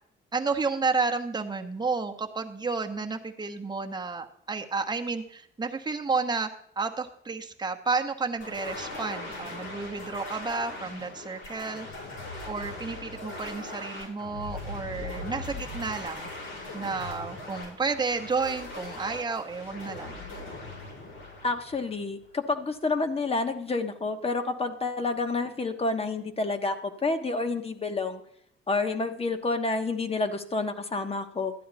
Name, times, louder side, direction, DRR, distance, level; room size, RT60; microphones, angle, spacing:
voice 1, 0.3-6.5 6.8-11.9 12.4-16.3 16.7-20.2, right 4 dB, 20° right, 4 dB, 1.1 m, -31 dB
sound 1, 8.4-22.3, left 2 dB, 90° left, 5.8 m, -40 dB
voice 2, 21.4-28.2 28.7-31.5, left 3 dB, 30° left, 7 dB, 1.2 m, -29 dB
12.5 x 9.3 x 4.1 m, 0.67 s
cardioid pair, 90°, 20 cm